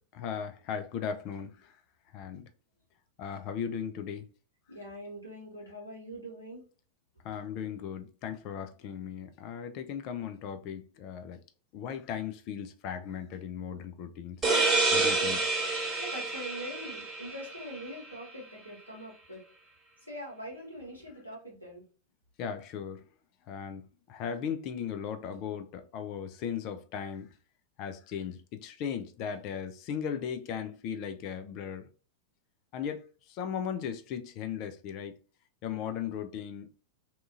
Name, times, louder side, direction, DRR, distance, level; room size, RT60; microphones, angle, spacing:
voice 1, 0.2-1.7 2.1-2.5 3.2-4.3 7.2-11.4 11.7-14.4 14.9-15.4 22.4-23.1 23.5-27.3 27.8-31.9 32.7-33.0 33.3-35.2 35.6-36.8, left 8 dB, 40° left, 0.3 m, -37 dB
voice 2, 4.7-6.6 15.0-15.4 16.0-19.4 20.1-21.8, equal, 85° left, 1.2 m, -43 dB
sound 1, 14.4-17.9, right 3 dB, 20° right, 1.0 m, -28 dB
2.8 x 2.3 x 2.5 m
figure-of-eight pair, 90°, 0 cm